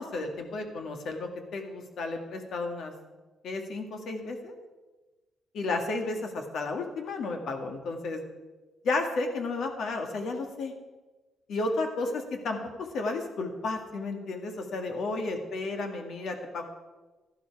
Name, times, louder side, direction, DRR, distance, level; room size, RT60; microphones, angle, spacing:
voice 1, 0.0-2.9 3.4-4.6 5.5-8.2 8.8-10.7 11.5-12.6 12.9-16.7, left 3 dB, 70° left, 4 dB, 2.0 m, -32 dB
13.5 x 11.5 x 4.8 m, 1.2 s
cardioid pair, 95°, 0 cm